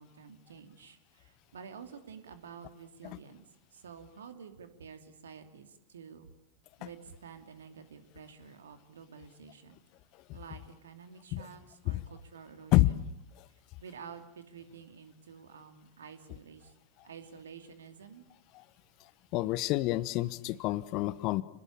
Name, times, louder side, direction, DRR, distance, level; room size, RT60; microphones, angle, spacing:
voice 1, 0.0-3.4 3.7-6.3 6.8-9.8 10.3-13.0 13.8-16.7 17.0-18.2, right 6 dB, 65° right, 8 dB, 2.8 m, -50 dB
voice 2, 19.3-21.4, left 18 dB, 40° left, 18 dB, 1.1 m, -28 dB
29.5 x 20.0 x 8.8 m, 0.84 s
figure-of-eight pair, 90°, 0 cm